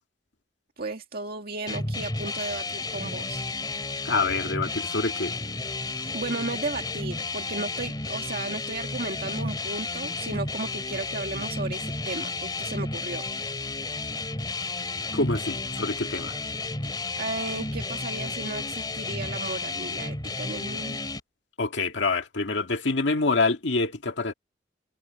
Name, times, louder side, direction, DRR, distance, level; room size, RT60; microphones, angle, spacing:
voice 1, 0.8-3.5 6.0-13.2 17.2-21.0, right 2 dB, 55° right, 2.1 m, -34 dB
sound 1, 1.7-21.2, left 3 dB, 25° left, 2.4 m, -32 dB
voice 2, 4.1-5.4 15.1-16.4 21.6-24.3, left 3 dB, 75° left, 1.9 m, -26 dB
head